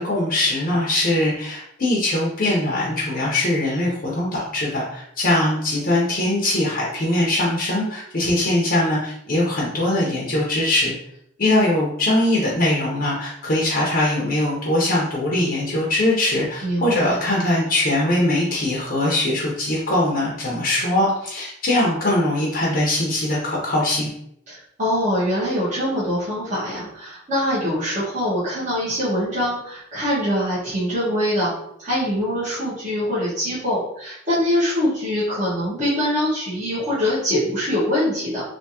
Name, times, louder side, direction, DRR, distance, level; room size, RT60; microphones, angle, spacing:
voice 1, 0.0-10.9 11.4-24.1, left 1 dB, 45° left, -4 dB, 0.7 m, -21 dB
voice 2, 16.6-17.1 24.5-31.5 31.8-38.4, equal, 40° right, -11 dB, 1.4 m, -23 dB
3.4 x 2.7 x 2.8 m, 0.73 s
head